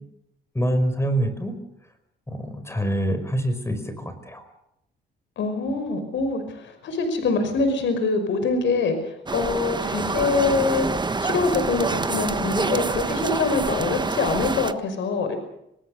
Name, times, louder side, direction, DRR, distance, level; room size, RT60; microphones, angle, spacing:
voice 1, 0.6-1.6 2.3-4.4, right 1 dB, 15° left, 9 dB, 5.3 m, -25 dB
voice 2, 5.4-15.4, left 4 dB, 70° left, 8 dB, 5.5 m, -24 dB
sound 1, 9.3-14.7, right 3 dB, 20° right, 1.3 m, -26 dB
26.5 x 19.0 x 6.7 m, 0.80 s
cardioid pair, 90°, 20 cm